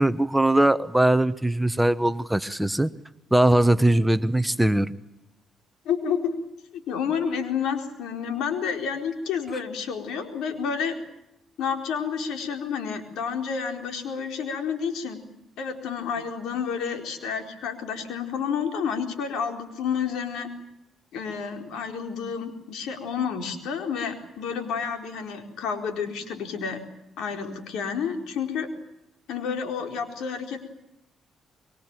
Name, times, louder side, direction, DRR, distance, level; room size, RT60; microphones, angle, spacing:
voice 1, 0.0-2.9 3.3-4.9, right 1 dB, 5° right, 13 dB, 1.0 m, -21 dB
voice 2, 5.8-6.4 6.7-10.9 11.6-15.2 15.6-20.5 21.1-26.8 27.2-28.7 29.3-30.6, left 6 dB, 85° left, 5 dB, 4.3 m, -30 dB
25.5 x 22.5 x 9.1 m, 0.90 s
cardioid pair, 90°, 0 cm